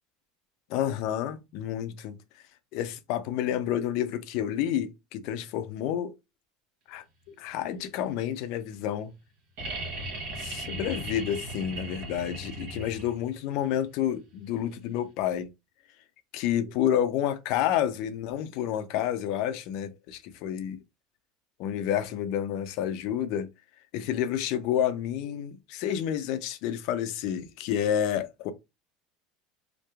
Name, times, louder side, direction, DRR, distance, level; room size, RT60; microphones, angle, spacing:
voice 1, 0.7-2.2 2.7-6.1 6.9-9.1 10.4-15.5 16.3-20.8 21.6-23.5 23.9-28.5, left 10 dB, 65° left, 0.4 m, -29 dB
sound 1, 9.6-13.3 15.0-15.1, right 1 dB, 65° right, 0.9 m, -37 dB
2.9 x 2.1 x 2.3 m
hypercardioid pair, 90°, 0 cm